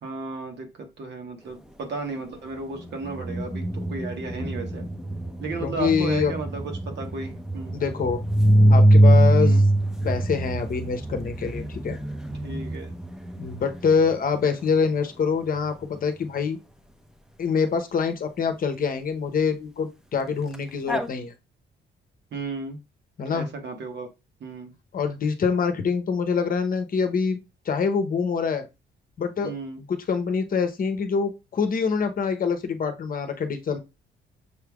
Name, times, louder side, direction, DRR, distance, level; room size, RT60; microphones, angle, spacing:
voice 1, 0.0-4.9 5.4-6.6 6.9-7.8 9.4-9.6 12.4-12.9 22.3-22.8 23.2-24.1 24.4-24.7 29.4-29.8, right 3 dB, 60° right, 4 dB, 1.5 m, -34 dB
sound 1, 2.8-14.3 20.5-20.6 20.9-21.1, right 1 dB, 5° right, 0.7 m, -23 dB
voice 2, 5.6-6.3 7.7-8.2 8.7-9.6 10.0-12.0 13.4-16.6 17.4-21.3 23.2-23.5 24.9-27.4 27.7-28.6 29.2-29.5 29.9-33.8, left 5 dB, 45° left, 7 dB, 0.9 m, -25 dB
6.7 x 3.3 x 2.3 m, 0.26 s
cardioid pair, 90°, 20 cm